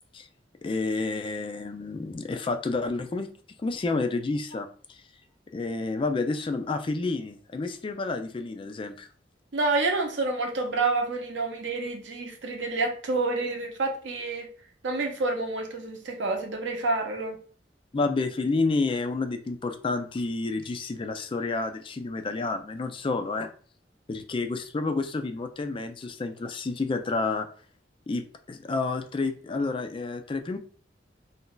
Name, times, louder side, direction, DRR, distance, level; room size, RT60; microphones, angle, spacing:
voice 1, 0.6-3.3 3.6-4.7 5.5-9.1 17.9-23.5 24.1-27.5 28.1-30.6, left 3 dB, 30° left, 0.3 m, -29 dB
voice 2, 9.5-14.5 14.8-17.4, right 3 dB, 75° right, 0.7 m, -28 dB
2.6 x 2.3 x 3.8 m
head